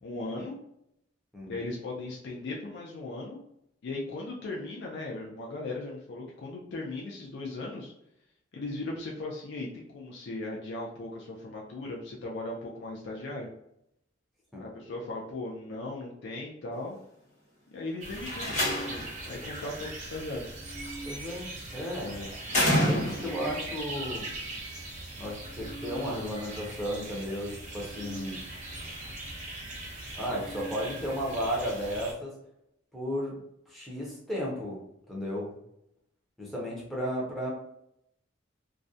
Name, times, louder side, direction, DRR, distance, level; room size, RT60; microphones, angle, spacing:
voice 1, 0.0-0.6 1.5-3.4 3.8-7.9 8.5-13.5 14.6-17.0 17.7-20.5, left 2 dB, 65° left, -2 dB, 0.4 m, -38 dB
sound 1, 18.0-32.1, right 2 dB, 40° right, 0.7 m, -40 dB
Slam, 18.2-19.2 20.7-21.1 22.5-23.5, equal, 40° left, 0.9 m, -27 dB
voice 2, 21.0-22.3 22.8-24.3 25.2-28.4 30.1-32.3 32.9-33.4 33.7-35.5 36.4-37.5, equal, ahead, -5 dB, 0.5 m, -34 dB
2.3 x 2.1 x 2.6 m, 0.78 s
head